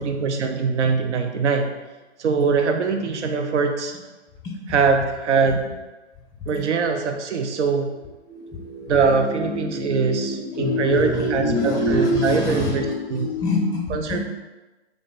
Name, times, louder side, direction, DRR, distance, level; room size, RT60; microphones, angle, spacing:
voice 1, 0.0-1.7 2.2-3.9 4.7-5.7 6.5-8.0 8.9-13.3 13.9-14.2, right 5 dB, 80° right, 5 dB, 0.5 m, -22 dB
voice 2, 8.3-8.9 9.3-14.2, left 1 dB, 10° left, -1 dB, 0.4 m, -25 dB
3.2 x 2.0 x 3.9 m, 1.1 s
figure-of-eight pair, 115°, 34 cm